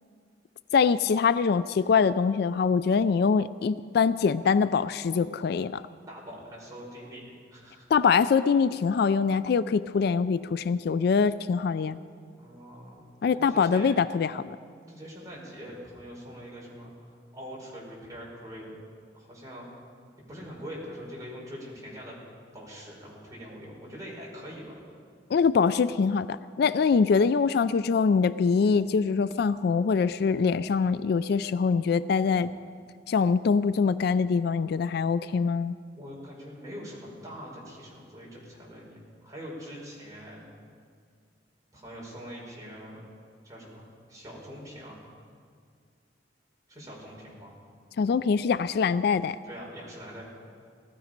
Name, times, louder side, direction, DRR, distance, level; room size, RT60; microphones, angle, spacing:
voice 1, 0.7-5.8 7.9-12.0 13.2-14.6 25.3-32.5 33.1-35.7 48.0-49.4, left 5 dB, 60° left, 15 dB, 0.3 m, -24 dB
voice 2, 6.1-7.9 12.4-13.0 13.3-13.9 14.9-16.9 17.3-18.8 19.1-19.7 20.3-22.2 22.5-24.6 36.0-38.9 39.2-40.4 41.7-43.0 43.4-45.0 46.7-47.5 49.4-50.2, equal, 20° right, -4 dB, 4.8 m, -43 dB
19.0 x 13.5 x 5.2 m, 2.2 s
head